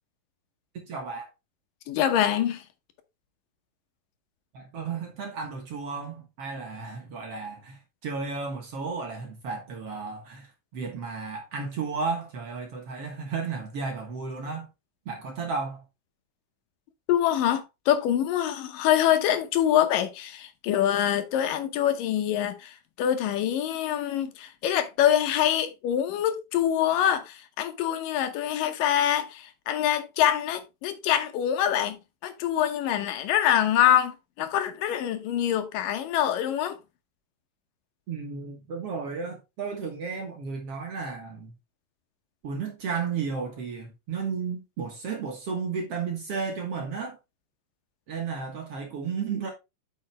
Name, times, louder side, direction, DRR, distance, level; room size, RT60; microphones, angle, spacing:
voice 1, 0.7-1.3 4.5-14.7 15.1-15.8 38.1-41.5 42.4-47.2 48.1-49.5, right 5 dB, 55° right, 1.9 m, -33 dB
voice 2, 1.9-2.6 17.1-36.7, left 11 dB, 75° left, 2.5 m, -25 dB
8.7 x 5.8 x 3.3 m
omnidirectional pair, 4.0 m